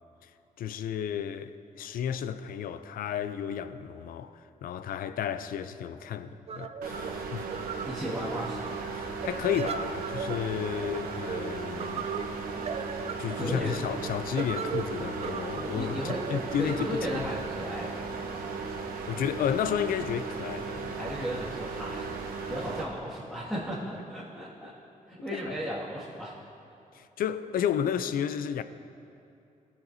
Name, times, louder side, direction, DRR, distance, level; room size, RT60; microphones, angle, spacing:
voice 1, 0.6-7.5 8.9-12.1 13.2-17.3 19.1-21.0 25.3-25.5 26.9-28.6, left 9 dB, 75° left, 0.4 m, -32 dB
sound 1, 6.5-18.1, right 6 dB, 45° right, 0.4 m, -38 dB
sound 2, 6.8-22.8, right 4 dB, 90° right, 0.9 m, -36 dB
voice 2, 7.8-8.7 13.4-13.8 15.7-16.2 16.6-18.0 21.0-22.1 22.4-24.7 25.1-26.3, equal, ahead, 1.9 m, -35 dB
17.0 x 7.0 x 2.7 m
cardioid pair, 90°, 15 cm